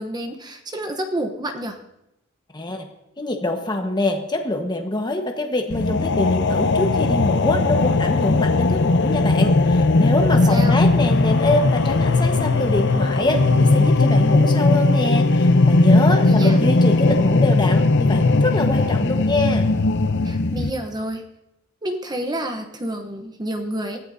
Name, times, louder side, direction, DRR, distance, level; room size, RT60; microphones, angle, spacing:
voice 1, 0.0-1.8 10.5-10.8 16.1-16.6 20.2-21.2 21.8-24.0, right 1 dB, 20° right, 5 dB, 0.9 m, -29 dB
voice 2, 2.5-2.8 3.2-19.7, left 1 dB, 20° left, 3 dB, 1.3 m, -24 dB
sound 1, 5.7-20.7, left 2 dB, 60° left, 0.7 m, -18 dB
Brass instrument, 12.5-18.5, right 3 dB, 70° right, 4.3 m, -45 dB
23.0 x 14.5 x 2.7 m, 0.89 s
head